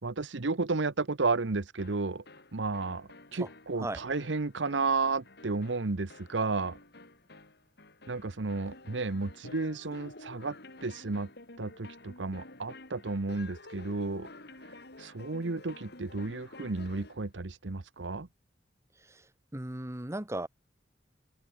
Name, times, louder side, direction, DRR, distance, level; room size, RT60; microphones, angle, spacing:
voice 1, 0.0-2.2 2.5-6.8 8.1-11.3 11.6-14.3 15.0-18.3, right 3 dB, 80° right, 1.0 m, -32 dB
sound 1, 1.8-17.3, left 2 dB, 60° left, 5.4 m, -51 dB
voice 2, 19.0-20.5, right 1 dB, 15° right, 1.4 m, -37 dB
open air
head